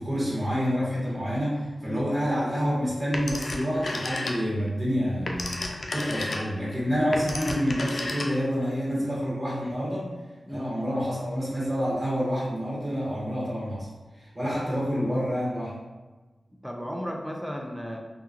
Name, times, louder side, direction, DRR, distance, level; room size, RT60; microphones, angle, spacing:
voice 1, 0.0-10.1 10.5-13.9 14.2-15.8, equal, 20° right, -7 dB, 1.1 m, -28 dB
voice 2, 1.8-2.1 10.5-10.8 14.4-14.5 16.6-18.0, equal, ahead, 1 dB, 0.5 m, -35 dB
Telephone, 3.1-4.7 5.0-8.6, left 2 dB, 70° left, 0.3 m, -33 dB
2.8 x 2.3 x 2.4 m, 1.3 s
cardioid pair, 45°, 0 cm